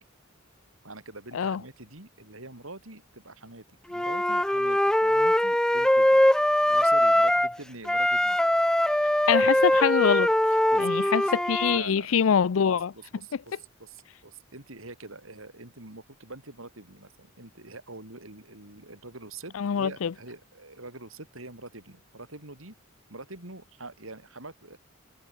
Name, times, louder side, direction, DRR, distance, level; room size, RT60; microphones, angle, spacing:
voice 1, 0.8-6.2 6.7-8.4 10.5-11.1 11.7-12.2 12.7-22.7 23.1-24.8, right 2 dB, 85° right, 6.0 m, -45 dB
Wind instrument woodwind instrument, 3.9-7.6 7.8-11.8, left 1 dB, 5° left, 0.3 m, -22 dB
voice 2, 9.3-10.3 10.8-12.9 19.5-20.1, left 7 dB, 80° left, 0.5 m, -24 dB
head